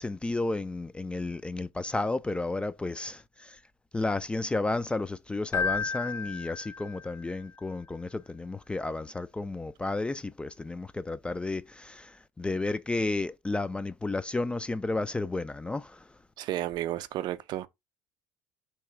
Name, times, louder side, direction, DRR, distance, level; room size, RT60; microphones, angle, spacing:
voice 1, 0.0-3.6 3.9-16.1, left 2 dB, 10° left, 0.3 m, -32 dB
Keyboard (musical), 5.5-7.3, left 5 dB, 30° left, 0.7 m, -32 dB
voice 2, 16.4-17.7, right 14 dB, 55° right, 0.5 m, -32 dB
3.0 x 2.9 x 4.5 m
hypercardioid pair, 70°, 9 cm